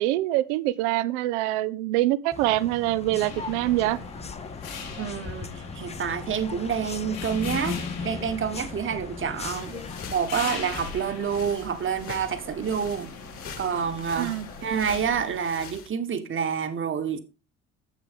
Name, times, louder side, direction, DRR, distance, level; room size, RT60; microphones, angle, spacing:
voice 1, 0.0-4.0 14.2-14.4, right 16 dB, 60° right, 0.6 m, -25 dB
sound 1, 2.3-10.1, left 5 dB, 15° left, 0.7 m, -38 dB
sound 2, 3.2-15.4, left 4 dB, 75° left, 2.6 m, -40 dB
voice 2, 5.0-13.1 13.6-14.3 14.6-17.2, right 7 dB, 30° right, 1.3 m, -28 dB
sound 3, 9.4-15.9, left 6 dB, 35° left, 1.6 m, -43 dB
10.5 x 7.4 x 3.6 m
figure-of-eight pair, 55°, 41 cm